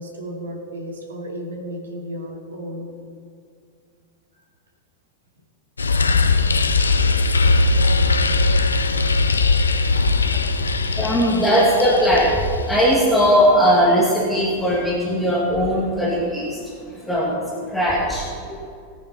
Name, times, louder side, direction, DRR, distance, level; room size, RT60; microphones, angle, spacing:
voice 1, 0.0-2.9, equal, 65° right, 1 dB, 2.5 m, -33 dB
sound 1, 5.8-12.9, left 3 dB, 75° left, 0.7 m, -19 dB
voice 2, 10.3-16.7 17.0-17.4 17.7-18.6, equal, 5° left, -5 dB, 2.4 m, -19 dB
18.5 x 8.9 x 4.4 m, 2.3 s
figure-of-eight pair, 90°, 0 cm